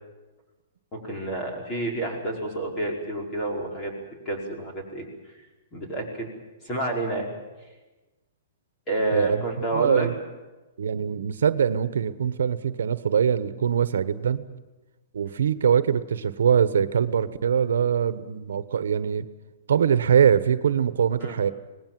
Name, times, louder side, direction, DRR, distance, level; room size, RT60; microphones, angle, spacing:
voice 1, 0.9-3.9 4.3-5.1 5.7-6.3 6.6-7.3 8.9-10.1 21.2-21.4, right 2 dB, 20° left, 0 dB, 5.2 m, -29 dB
voice 2, 9.1-9.4 9.7-10.1 10.8-14.4 15.1-19.2 19.7-21.5, right 8 dB, 85° right, 13 dB, 1.2 m, -23 dB
26.0 x 19.5 x 7.7 m, 1.1 s
hypercardioid pair, 170°, 0 cm